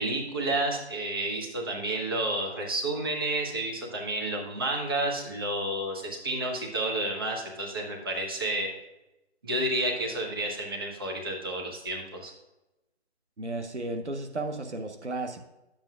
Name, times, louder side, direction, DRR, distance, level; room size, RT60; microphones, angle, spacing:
voice 1, 0.0-8.7 9.4-12.3, right 1 dB, 20° right, -1 dB, 0.9 m, -30 dB
voice 2, 13.4-15.4, right 2 dB, 90° right, 6 dB, 1.0 m, -34 dB
10.5 x 7.5 x 2.4 m, 0.96 s
figure-of-eight pair, 155°, 34 cm